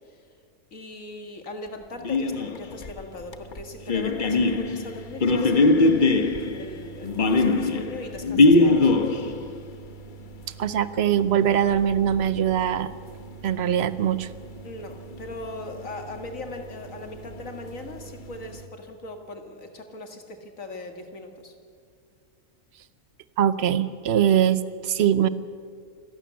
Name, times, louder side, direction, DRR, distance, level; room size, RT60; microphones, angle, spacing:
voice 1, 0.7-8.9 14.6-21.5, left 2 dB, 60° left, 5 dB, 2.2 m, -39 dB
sound 1, 2.0-18.7, left 2 dB, 40° left, 1.0 m, -25 dB
voice 2, 10.6-12.9 13.4-14.3 23.4-25.3, right 9 dB, 55° right, 14 dB, 0.8 m, -22 dB
27.0 x 12.0 x 8.2 m, 2.2 s
omnidirectional pair, 1.6 m